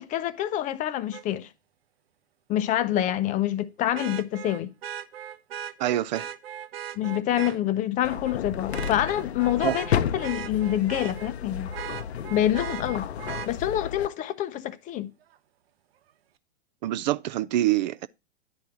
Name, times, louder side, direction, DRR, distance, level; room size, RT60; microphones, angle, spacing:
voice 1, 0.0-1.5 2.5-4.7 7.0-11.7 12.3-13.1 13.5-15.1, left 12 dB, 25° left, 0.6 m, -26 dB
Vehicle horn car horn honking, 1.1-1.2 3.9-7.6 8.1-8.4 8.7-11.3 11.7-13.5 15.3-15.4, right 10 dB, 65° right, 0.9 m, -38 dB
voice 2, 5.8-6.3 9.6-9.8 16.8-18.1, right 14 dB, 45° right, 0.4 m, -25 dB
sound 1, 8.0-14.1, left 9 dB, 75° left, 0.7 m, -32 dB
10.5 x 4.5 x 4.7 m
hypercardioid pair, 120°, 32 cm